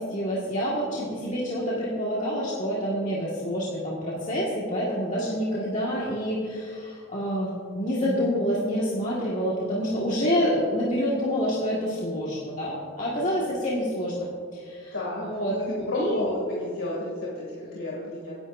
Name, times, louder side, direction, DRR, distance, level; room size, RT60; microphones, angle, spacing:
voice 1, 0.0-14.9 15.2-15.5 15.9-16.2, equal, 35° left, -6 dB, 1.9 m, -27 dB
voice 2, 13.2-13.6 14.9-18.4, left 1 dB, 70° left, -5 dB, 2.6 m, -32 dB
25.0 x 11.0 x 2.7 m, 2.2 s
head